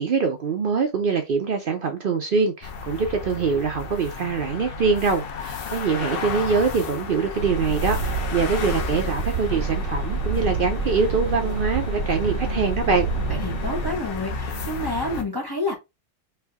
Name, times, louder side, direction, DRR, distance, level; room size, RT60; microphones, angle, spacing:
voice 1, 0.0-13.1, right 5 dB, 55° right, 0.7 m, -24 dB
sound 1, 2.6-15.2, left 5 dB, 55° left, 0.8 m, -33 dB
sound 2, 7.4-13.9, right 4 dB, 80° right, 1.1 m, -28 dB
voice 2, 13.3-15.8, left 2 dB, 25° left, 0.8 m, -29 dB
3.3 x 2.6 x 3.4 m
omnidirectional pair, 1.2 m